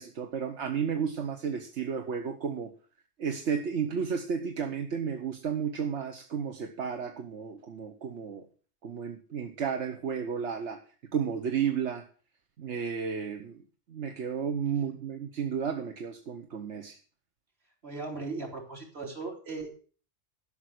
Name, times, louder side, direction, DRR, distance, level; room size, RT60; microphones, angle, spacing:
voice 1, 0.0-2.7 3.2-8.4 8.8-10.8 11.1-12.0 12.6-13.6 13.9-17.0, right 7 dB, 85° right, 5 dB, 1.4 m, -32 dB
voice 2, 17.8-19.7, right 3 dB, 65° right, 1 dB, 3.4 m, -37 dB
12.5 x 6.3 x 7.8 m, 0.40 s
omnidirectional pair, 1.2 m